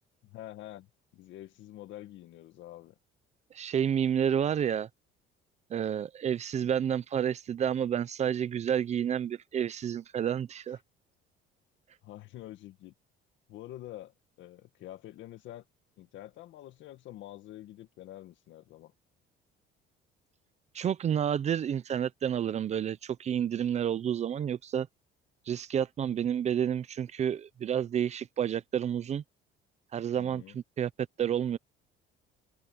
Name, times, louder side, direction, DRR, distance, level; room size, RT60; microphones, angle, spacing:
voice 1, 0.2-0.9 1.1-3.0 12.0-12.9 13.5-15.6 16.0-18.9 30.2-30.6, left 14 dB, 65° left, 1.9 m, -47 dB
voice 2, 3.5-4.9 5.7-10.8 20.7-24.9 25.5-29.2 29.9-30.9 31.2-31.6, right 9 dB, 35° right, 0.6 m, -30 dB
cardioid pair, 155°, 21 cm